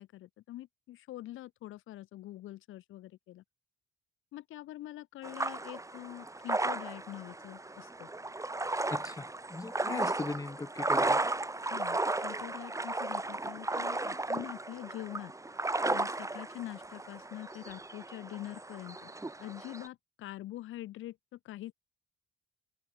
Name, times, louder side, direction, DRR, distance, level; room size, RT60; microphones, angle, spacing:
voice 1, 0.0-3.4 4.3-8.1 9.9-10.1 11.6-15.3 15.9-19.1 19.4-21.7, left 15 dB, 85° left, 4.4 m, -44 dB
sound 1, 5.2-19.9, right 2 dB, 15° right, 4.1 m, -35 dB
voice 2, 8.9-11.2, left 3 dB, 15° left, 1.6 m, -39 dB
cardioid pair, 90°, 20 cm